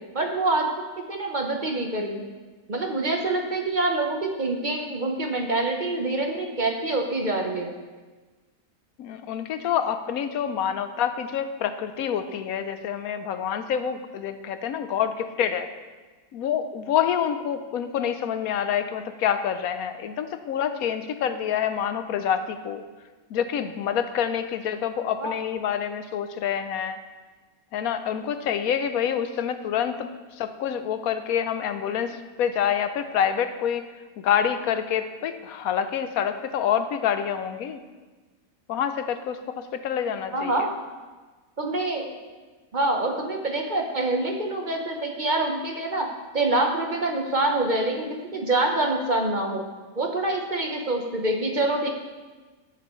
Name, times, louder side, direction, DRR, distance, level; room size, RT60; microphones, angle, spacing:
voice 1, 0.1-0.7 1.1-2.2 2.7-7.7 25.2-25.3 40.3-40.7 41.6-42.1 42.7-46.1 46.3-49.6 50.0-51.9, right 2 dB, 35° right, 2 dB, 1.0 m, -26 dB
voice 2, 9.0-15.7 16.3-22.8 23.3-27.0 27.7-30.1 30.4-33.8 34.2-37.8 38.7-40.7, left 8 dB, 80° left, 9 dB, 1.1 m, -27 dB
17.0 x 7.1 x 3.1 m, 1.3 s
omnidirectional pair, 1.5 m